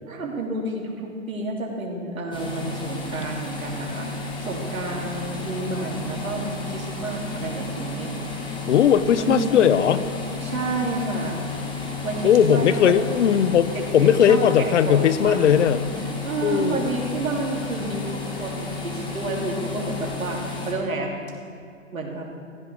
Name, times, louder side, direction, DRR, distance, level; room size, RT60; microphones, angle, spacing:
voice 1, 0.1-8.1 9.2-9.7 10.4-11.5 12.0-12.9 13.7-15.7 16.2-20.4 20.6-21.1 21.9-22.3, right 2 dB, 80° right, 0 dB, 2.9 m, -30 dB
sound 1, 2.3-20.7, left 3 dB, 10° left, 1.8 m, -32 dB
voice 2, 8.7-10.0 12.2-15.8 16.4-16.9, left 8 dB, 60° left, 14 dB, 0.8 m, -18 dB
15.0 x 13.0 x 4.7 m, 2.4 s
hypercardioid pair, 140°, 41 cm